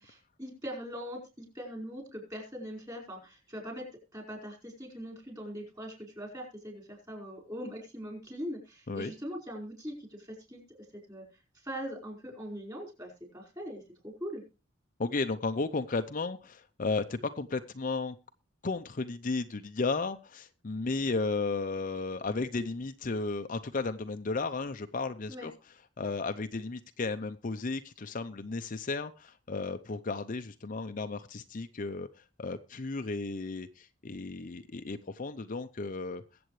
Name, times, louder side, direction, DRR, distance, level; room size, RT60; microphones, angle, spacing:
voice 1, 0.0-10.6 11.1-11.2 11.6-14.4 25.3-25.5, equal, 20° right, 2 dB, 5.0 m, -41 dB
voice 2, 15.0-18.2 18.6-25.5 26.0-36.2, left 3 dB, 40° left, 9 dB, 0.6 m, -34 dB
22.0 x 7.8 x 3.2 m, 0.29 s
head